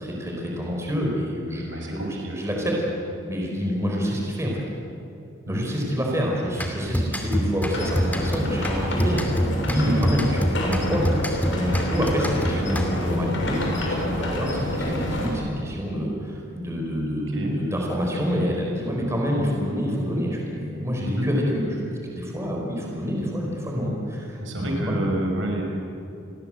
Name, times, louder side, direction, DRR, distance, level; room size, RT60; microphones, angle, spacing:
voice 1, 0.0-2.8 3.3-4.6 5.5-9.2 9.6-25.0, equal, 15° right, -1 dB, 5.3 m, -27 dB
voice 2, 1.7-2.4 5.5-5.6 17.3-17.5 21.0-21.3 24.4-25.6, right 1 dB, 70° right, 1 dB, 5.9 m, -28 dB
sound 1, 6.6-13.2, equal, 10° left, 2.6 m, -27 dB
sound 2, 7.7-15.3, left 1 dB, 70° left, 6.7 m, -28 dB
29.5 x 22.5 x 8.0 m, 2.8 s
head